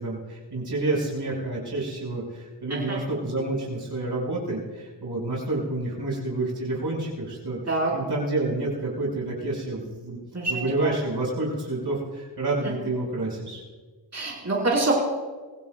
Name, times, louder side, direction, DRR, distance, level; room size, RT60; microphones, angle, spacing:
voice 1, 0.0-7.6 7.9-10.2 10.5-13.6, right 2 dB, 60° right, -4 dB, 5.7 m, -29 dB
voice 2, 10.3-10.9 12.6-12.7 14.1-14.9, right 2 dB, 35° right, -4 dB, 4.9 m, -26 dB
26.0 x 16.0 x 2.4 m, 1.4 s
cardioid pair, 40°, 44 cm